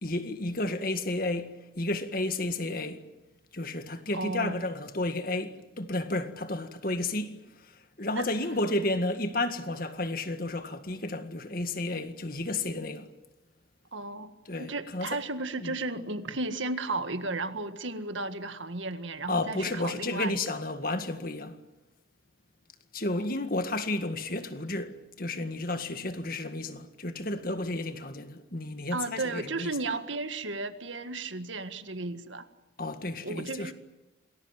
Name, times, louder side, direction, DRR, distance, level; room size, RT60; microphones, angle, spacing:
voice 1, 0.0-3.0 3.5-13.1 14.5-15.2 15.6-15.7 19.3-21.6 22.9-29.7 32.8-33.7, left 2 dB, 45° left, 1.9 m, -32 dB
voice 2, 4.1-4.6 8.2-8.3 13.9-14.3 14.6-20.4 23.2-23.3 28.9-32.5 33.2-33.7, right 2 dB, 80° right, 1.8 m, -34 dB
27.5 x 20.0 x 9.1 m
head